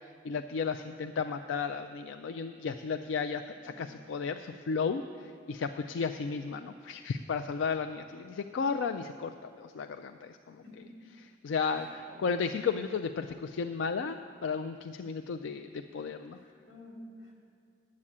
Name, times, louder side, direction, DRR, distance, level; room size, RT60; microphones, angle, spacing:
voice 1, 0.2-10.8 11.2-16.4, left 5 dB, 85° left, 8 dB, 0.3 m, -34 dB
voice 2, 10.6-11.1 12.1-12.2 16.4-17.3, left 1 dB, 65° left, -2 dB, 2.6 m, -50 dB
8.5 x 7.4 x 8.6 m, 2.2 s
head